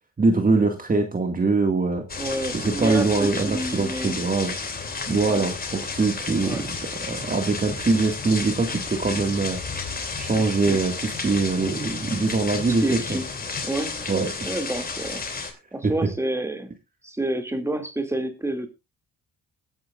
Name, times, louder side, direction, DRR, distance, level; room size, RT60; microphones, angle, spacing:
voice 1, 0.2-2.0 2.5-4.6 5.1-6.7 7.0-9.6 10.2-13.2 14.1-14.3 15.8-15.9, right 3 dB, 30° right, 5 dB, 2.1 m, -23 dB
sound 1, 2.1-15.5, left 4 dB, 30° left, 3.0 m, -32 dB
voice 2, 2.2-4.2 5.2-5.5 6.4-6.7 10.4-10.8 12.8-13.3 13.6-14.1 14.4-15.2 15.7-16.7 17.0-18.7, right 1 dB, 10° right, 6 dB, 2.6 m, -29 dB
sound 2, 6.3-14.0, left 4 dB, 50° left, 3.6 m, -43 dB
21.0 x 9.5 x 2.5 m, 0.26 s
cardioid pair, 90°, 30 cm